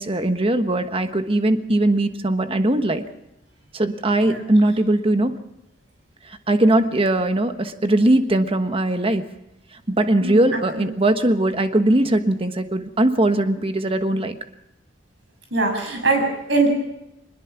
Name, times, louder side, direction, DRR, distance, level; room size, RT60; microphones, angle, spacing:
voice 1, 0.0-3.0 3.7-5.4 6.2-9.3 9.9-14.4, right 1 dB, 30° right, 8 dB, 1.3 m, -20 dB
voice 2, 15.5-16.7, right 3 dB, 70° right, 3 dB, 7.0 m, -22 dB
24.0 x 21.0 x 6.0 m, 0.89 s
head